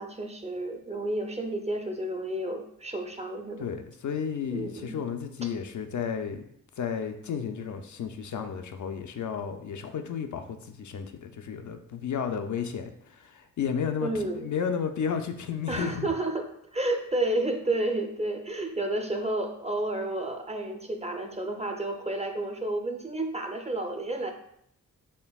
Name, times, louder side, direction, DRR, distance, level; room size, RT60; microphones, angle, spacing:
voice 1, 0.0-3.7 4.5-4.9 14.0-14.5 15.7-16.5 16.7-24.3, right 2 dB, 20° right, 4 dB, 0.5 m, -31 dB
voice 2, 3.6-6.5 6.8-16.1, left 7 dB, 60° left, 7 dB, 0.4 m, -33 dB
4.3 x 3.3 x 2.3 m, 0.71 s
cardioid pair, 80°, 33 cm